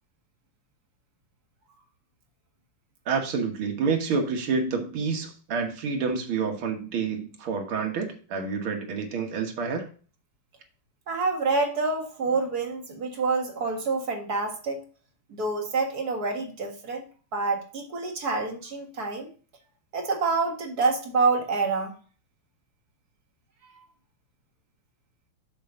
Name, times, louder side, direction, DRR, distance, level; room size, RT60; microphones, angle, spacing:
voice 1, 3.1-9.9, right 5 dB, 75° right, 3 dB, 2.3 m, -28 dB
voice 2, 11.1-14.8 15.3-17.0 17.3-19.3 19.9-21.9, right 4 dB, 45° right, 2 dB, 2.0 m, -27 dB
6.8 x 6.7 x 3.8 m, 0.39 s
omnidirectional pair, 2.4 m